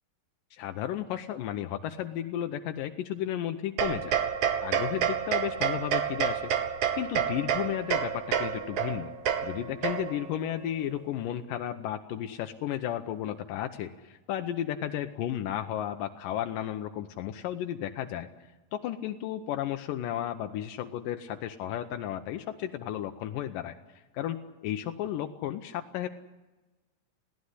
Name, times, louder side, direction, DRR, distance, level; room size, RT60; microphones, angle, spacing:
voice 1, 0.5-4.2 4.6-6.5 7.0-9.1 9.4-18.3 18.7-26.1, left 11 dB, 85° left, 7 dB, 2.5 m, -33 dB
sound 1, 3.8-10.4, right 8 dB, 65° right, 2.8 m, -29 dB
21.0 x 16.5 x 10.0 m, 1.1 s
omnidirectional pair, 3.8 m